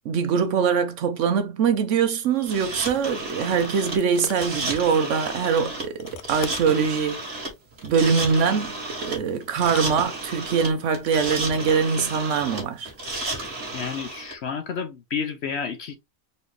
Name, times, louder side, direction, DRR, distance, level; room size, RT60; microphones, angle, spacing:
voice 1, 0.0-7.2 7.8-8.7 9.0-12.9, right 6 dB, 65° right, 0.9 m, -23 dB
sound 1, 2.4-14.3, right 2 dB, 45° right, 1.8 m, -33 dB
sound 2, 3.9-4.6 6.0-6.8 8.2-8.6 9.5-10.6 11.4-12.2, left 10 dB, 85° left, 1.1 m, -41 dB
voice 2, 13.7-15.9, left 6 dB, 60° left, 0.7 m, -30 dB
4.1 x 2.9 x 3.2 m
omnidirectional pair, 1.5 m